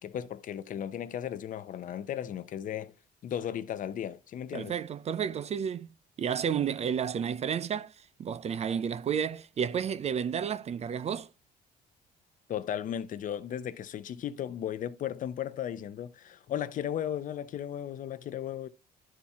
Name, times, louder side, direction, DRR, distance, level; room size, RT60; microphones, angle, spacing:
voice 1, 0.0-2.9 3.2-4.7 12.5-18.7, left 10 dB, 50° left, 0.8 m, -35 dB
voice 2, 4.5-5.9 6.2-7.9 8.2-11.3, right 7 dB, 40° right, 0.5 m, -31 dB
11.5 x 4.4 x 3.4 m
cardioid pair, 110°, 17 cm